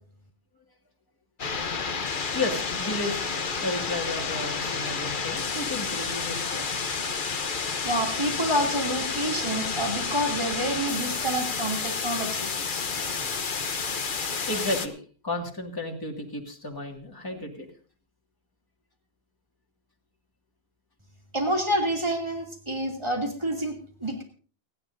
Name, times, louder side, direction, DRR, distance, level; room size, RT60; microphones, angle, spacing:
sound 1, 1.4-14.9, left 5 dB, 50° left, 1.1 m, -30 dB
voice 1, 2.3-3.3 3.6-6.9 14.5-15.0 15.2-17.7, left 2 dB, 20° left, 1 dB, 2.1 m, -33 dB
voice 2, 7.8-12.5 21.3-24.2, right 1 dB, 25° right, 1 dB, 2.8 m, -28 dB
29.0 x 10.5 x 2.7 m, 0.40 s
omnidirectional pair, 1.1 m